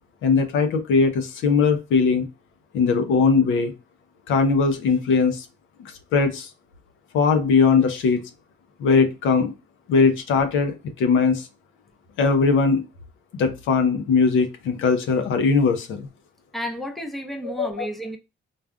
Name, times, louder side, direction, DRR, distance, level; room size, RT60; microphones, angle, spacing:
voice 1, 0.2-2.3 2.7-3.7 4.3-5.4 6.1-6.5 7.1-8.2 8.8-9.5 9.9-11.5 12.2-12.8 13.4-16.1 17.4-17.9, left 5 dB, 80° left, 0.6 m, -20 dB
voice 2, 16.5-18.2, equal, ahead, 0.6 m, -32 dB
3.4 x 2.4 x 2.3 m
cardioid pair, 90°, 20 cm